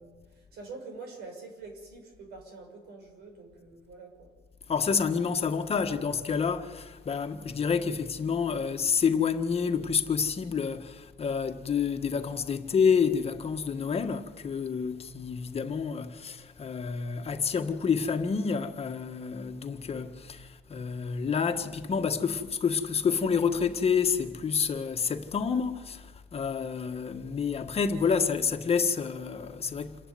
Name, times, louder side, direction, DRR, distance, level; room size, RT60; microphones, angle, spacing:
voice 1, 0.0-4.3, right 3 dB, 80° right, 6.5 m, -46 dB
voice 2, 4.7-30.0, left 6 dB, 35° left, 1.6 m, -28 dB
28.0 x 11.5 x 9.6 m
cardioid pair, 110°, 17 cm